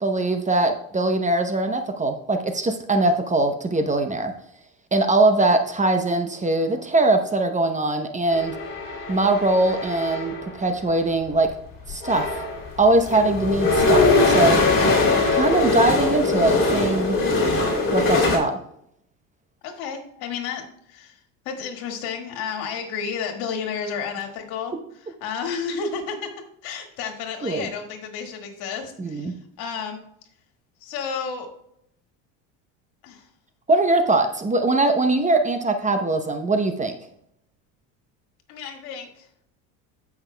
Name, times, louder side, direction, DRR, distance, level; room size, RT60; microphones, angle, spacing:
voice 1, 0.0-4.3 4.9-8.5 9.1-11.5 11.9-12.3 12.8-14.6 15.3-17.2 17.9-18.5 27.4-27.7 29.0-29.3 33.7-36.9, right 2 dB, 20° right, 6 dB, 0.8 m, -21 dB
sound 1, 8.3-10.5 11.5-11.6 11.9-18.4, left 3 dB, 30° left, 2.9 m, -21 dB
voice 2, 19.6-21.2 21.5-24.7 25.0-26.3 26.6-30.0 30.8-31.5 33.0-33.2 38.5-39.3, left 6 dB, 65° left, 4 dB, 2.0 m, -32 dB
16.0 x 5.9 x 2.3 m, 0.72 s
supercardioid pair, 95°, 39 cm